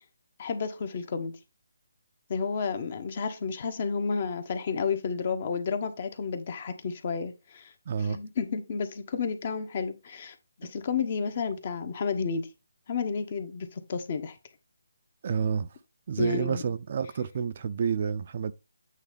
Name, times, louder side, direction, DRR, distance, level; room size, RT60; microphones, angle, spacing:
voice 1, 0.4-1.4 2.3-7.7 8.0-12.5 12.9-14.3 16.2-16.6, left 5 dB, 40° left, 1.2 m, -31 dB
voice 2, 7.9-8.2 10.6-10.7 15.2-15.7 16.1-18.5, right 6 dB, 45° right, 0.5 m, -29 dB
8.3 x 3.2 x 5.1 m
figure-of-eight pair, 160°, 0 cm